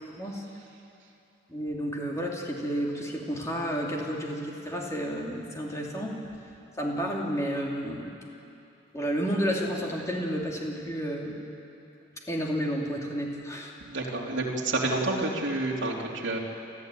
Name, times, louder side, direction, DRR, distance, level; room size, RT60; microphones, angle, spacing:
voice 1, 0.1-0.4 1.5-6.2 6.8-8.1 8.9-11.4 12.3-13.7, equal, 15° left, -2 dB, 2.8 m, -31 dB
voice 2, 13.9-16.4, right 2 dB, 60° right, -3 dB, 3.2 m, -29 dB
29.5 x 13.0 x 9.2 m, 2.8 s
head